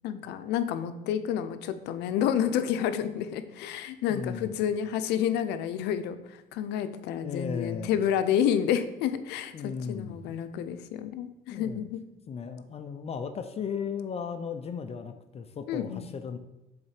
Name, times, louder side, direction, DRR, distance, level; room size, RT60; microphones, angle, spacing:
voice 1, 0.0-12.0 15.7-16.1, left 9 dB, 90° left, 11 dB, 0.6 m, -29 dB
voice 2, 4.1-4.5 7.2-7.9 9.5-10.2 11.5-11.8 12.3-16.4, left 6 dB, 35° left, 8 dB, 0.5 m, -36 dB
7.2 x 4.1 x 4.9 m, 0.95 s
cardioid pair, 110°, 17 cm